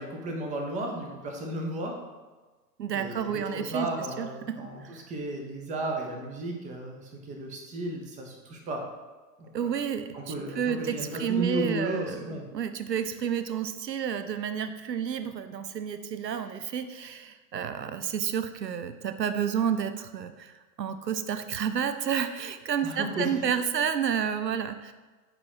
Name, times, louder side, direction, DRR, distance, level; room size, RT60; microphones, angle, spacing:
voice 1, 0.0-1.9 2.9-8.8 9.4-9.7 10.1-12.4 22.8-23.5, right 1 dB, 15° right, 2 dB, 0.9 m, -34 dB
voice 2, 2.8-3.9 4.2-5.0 9.5-24.9, right 8 dB, 80° right, 10 dB, 0.6 m, -30 dB
9.0 x 3.2 x 4.6 m, 1.3 s
figure-of-eight pair, 105°, 49 cm